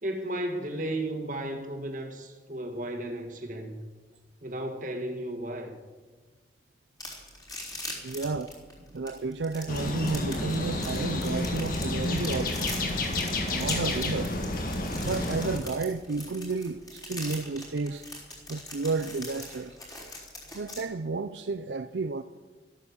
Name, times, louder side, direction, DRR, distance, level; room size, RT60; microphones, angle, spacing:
voice 1, 0.0-3.8 4.4-5.8 8.0-8.2, right 1 dB, 45° right, 1.8 m, -34 dB
sound 1, 7.0-20.8, left 2 dB, 20° left, 3.7 m, -41 dB
voice 2, 8.0-8.6 8.9-12.8 13.5-14.3 15.0-18.1 18.5-19.8 20.5-22.2, right 3 dB, 80° right, 0.5 m, -32 dB
sound 2, 9.7-15.6, left 2 dB, 50° left, 2.0 m, -30 dB
13.5 x 12.5 x 7.1 m
head